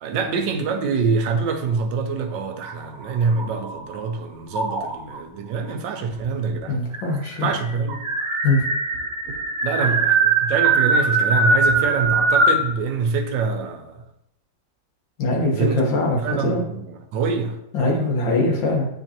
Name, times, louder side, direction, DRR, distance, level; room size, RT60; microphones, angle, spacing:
voice 1, 0.0-6.8 7.4-8.0 9.6-14.0 15.5-17.6, right 5 dB, 80° right, 7 dB, 1.3 m, -25 dB
sound 1, 2.5-4.0 4.5-5.2 6.2-6.3 6.5-6.6 6.9-12.7, right 3 dB, 55° right, 1.4 m, -21 dB
voice 2, 6.7-7.5 8.4-8.6 15.2-16.7 17.7-18.9, left 2 dB, 90° left, -1 dB, 2.1 m, -22 dB
8.9 x 3.8 x 2.9 m, 0.79 s
omnidirectional pair, 2.0 m